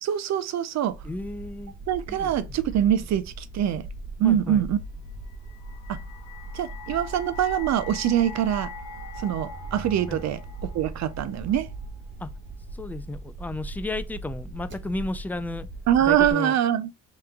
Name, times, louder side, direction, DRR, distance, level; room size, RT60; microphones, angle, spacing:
voice 1, 0.0-1.0 1.9-3.9 4.2-4.8 5.9-6.0 6.5-8.7 9.2-11.7 15.9-16.9, right 10 dB, 65° right, 0.5 m, -24 dB
sound 1, 0.9-16.3, right 2 dB, 40° right, 0.9 m, -39 dB
voice 2, 1.0-1.7 2.1-2.6 4.2-4.6 10.1-10.2 12.2-12.3 12.7-15.7 16.1-16.6, left 2 dB, 5° left, 0.3 m, -33 dB
sound 2, 5.3-12.4, left 4 dB, 55° left, 1.3 m, -43 dB
3.4 x 3.0 x 3.5 m
cardioid pair, 90°, 30 cm